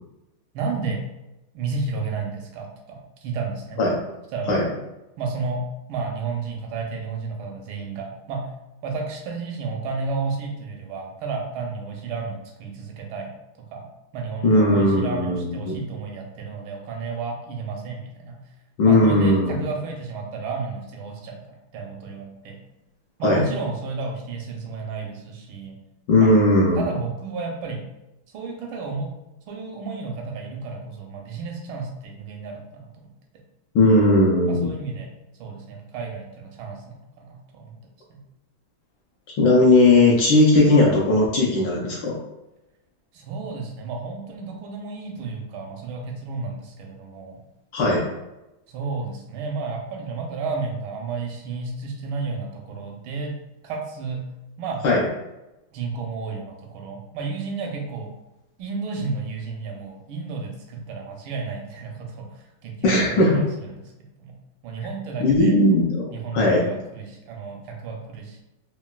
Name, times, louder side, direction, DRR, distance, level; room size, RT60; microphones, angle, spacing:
voice 1, 0.5-1.0 1.5-3.8 4.3-4.6 5.2-8.5 8.8-13.3 13.7-13.8 14.1-18.4 18.8-22.6 23.2-25.8 26.2-26.3 26.8-27.8 28.3-29.1 29.5-32.9 34.5-35.1 35.4-37.8 38.1-38.2 43.1-47.4 48.7-53.3 53.6-54.2 54.6-54.8 55.7-58.1 58.6-63.8 64.2-64.3 64.6-65.6 66.1-68.4, right 4 dB, 80° right, 1 dB, 1.4 m, -32 dB
voice 2, 14.4-15.8 18.8-19.6 23.2-23.4 26.1-26.8 33.7-34.7 39.4-42.2 47.7-48.0 54.8-55.0 62.8-63.4 64.8-64.9 65.2-66.6, left 2 dB, 70° left, -3 dB, 1.1 m, -18 dB
3.8 x 2.2 x 2.2 m, 0.95 s
omnidirectional pair, 2.3 m